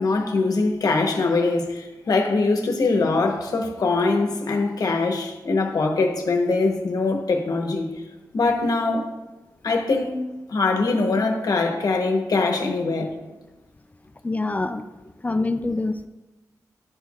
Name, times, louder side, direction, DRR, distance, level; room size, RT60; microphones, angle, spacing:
voice 1, 0.0-7.9 8.3-9.1 9.6-13.1, left 3 dB, 70° left, 0.9 m, -22 dB
voice 2, 14.2-14.8 15.2-16.1, left 2 dB, 25° left, 0.3 m, -25 dB
11.0 x 4.4 x 2.4 m
wide cardioid pair, 80°, 7 cm